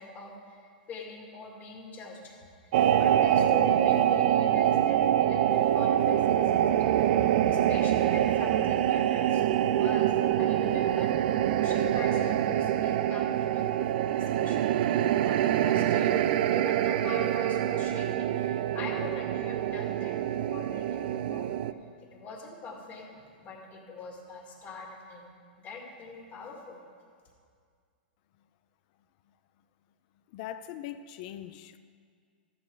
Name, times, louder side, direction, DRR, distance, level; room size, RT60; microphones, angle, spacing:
voice 1, 0.0-2.4 2.6-6.7 7.5-11.1 11.5-16.2 16.5-21.8 22.1-25.3 25.6-26.8, left 4 dB, 30° left, 1 dB, 2.1 m, -43 dB
sound 1, 2.7-21.7, right 11 dB, 60° right, 0.4 m, -25 dB
voice 2, 30.3-31.8, left 11 dB, 50° left, 11 dB, 0.5 m, -41 dB
12.5 x 8.4 x 4.7 m, 2.1 s
hypercardioid pair, 120°, 5 cm